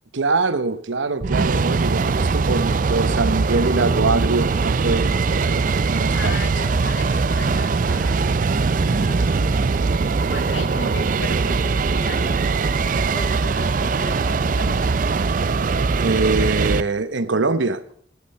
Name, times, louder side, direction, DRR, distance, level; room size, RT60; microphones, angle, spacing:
voice 1, 0.1-6.4 16.0-17.8, right 3 dB, 80° right, 0.9 m, -23 dB
sound 1, 1.2-16.8, right 4 dB, 45° right, 0.4 m, -21 dB
voice 2, 6.1-9.6 10.3-14.9, left 2 dB, 85° left, 2.2 m, -36 dB
14.5 x 8.5 x 5.5 m
head